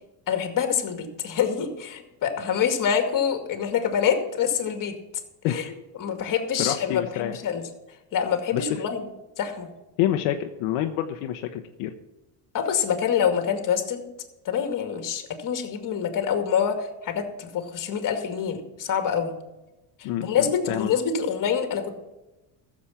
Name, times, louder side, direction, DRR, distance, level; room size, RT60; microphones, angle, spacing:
voice 1, 0.3-5.0 5.5-5.7 6.0-7.6 8.1-9.1 9.4-9.7 12.5-14.0 14.4-19.3 20.0-21.9, left 7 dB, 40° left, 6 dB, 2.3 m, -26 dB
voice 2, 6.6-7.4 8.5-8.8 10.0-11.9 20.0-20.9, left 12 dB, 75° left, 4 dB, 1.1 m, -27 dB
14.5 x 7.5 x 5.8 m, 1.0 s
cardioid pair, 140°, 49 cm